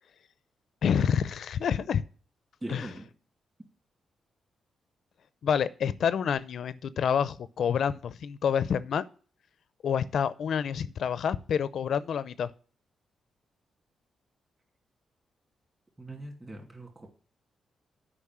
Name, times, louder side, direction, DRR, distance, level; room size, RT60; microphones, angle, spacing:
voice 1, 0.8-2.0 2.7-2.9 5.4-9.0 9.8-12.5, left 7 dB, 70° left, 16 dB, 0.5 m, -28 dB
voice 2, 2.6-3.1 16.0-17.1, right 1 dB, 25° right, 2 dB, 2.7 m, -41 dB
8.5 x 5.2 x 7.4 m, 0.40 s
cardioid pair, 90°, 0 cm